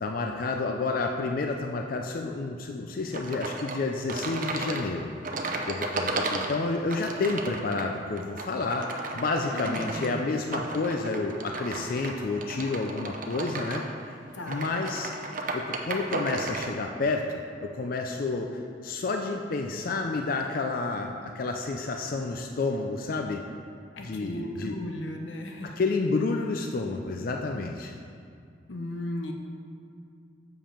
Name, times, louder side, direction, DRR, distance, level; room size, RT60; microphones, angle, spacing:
voice 1, 0.0-5.1 5.7-14.2 14.5-15.1 15.5-23.4 24.0-24.8 25.6-28.0, left 3 dB, 50° left, 3 dB, 0.4 m, -30 dB
sound 1, 3.1-16.7, right 2 dB, 50° right, 0.6 m, -34 dB
voice 2, 9.5-10.3 14.3-15.0 23.9-25.8 28.7-29.3, left 1 dB, 85° left, 3 dB, 0.8 m, -36 dB
7.2 x 5.1 x 5.8 m, 2.3 s
head